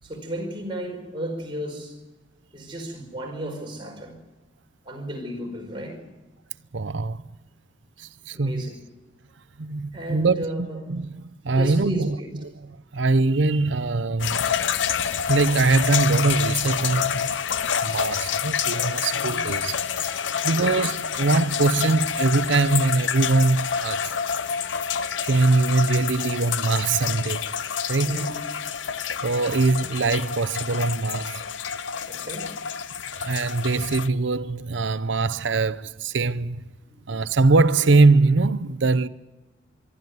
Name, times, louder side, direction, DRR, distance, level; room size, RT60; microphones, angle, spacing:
voice 1, 0.0-1.9 2.5-4.2 4.8-6.0 8.3-8.8 9.9-10.9 11.5-12.3 12.9-13.0 19.2-19.5 20.6-20.8 28.1-28.3 32.1-32.6 36.8-37.0, right 1 dB, 25° right, 5.1 m, -34 dB
voice 2, 6.7-7.2 8.0-8.6 9.6-12.2 12.4-12.5 12.9-14.5 15.2-17.5 17.8-20.1 20.4-24.1 25.2-27.6 27.9-28.3 29.2-31.4 33.2-36.7 37.1-39.1, right 3 dB, 80° right, 0.7 m, -22 dB
sound 1, 14.2-34.1, left 7 dB, 80° left, 0.7 m, -28 dB
25.0 x 12.5 x 9.5 m
head